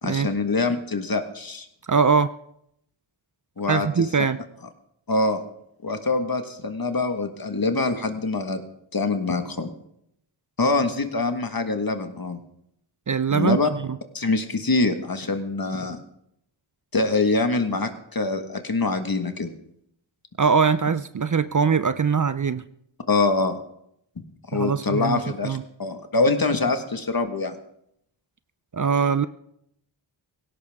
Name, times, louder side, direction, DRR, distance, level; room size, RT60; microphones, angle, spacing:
voice 1, 0.0-1.7 3.6-4.0 5.1-5.4 5.8-8.6 8.9-9.7 10.6-12.4 13.3-13.7 14.1-16.0 16.9-19.5 23.1-23.6 24.2-27.6, left 3 dB, 45° left, 7 dB, 1.7 m, -24 dB
voice 2, 1.9-2.3 3.7-4.4 13.1-13.6 13.9-14.0 20.4-22.6 24.5-25.6 28.7-29.3, right 6 dB, 40° right, 14 dB, 0.6 m, -22 dB
17.5 x 17.0 x 3.6 m, 0.75 s
wide cardioid pair, 55°, 47 cm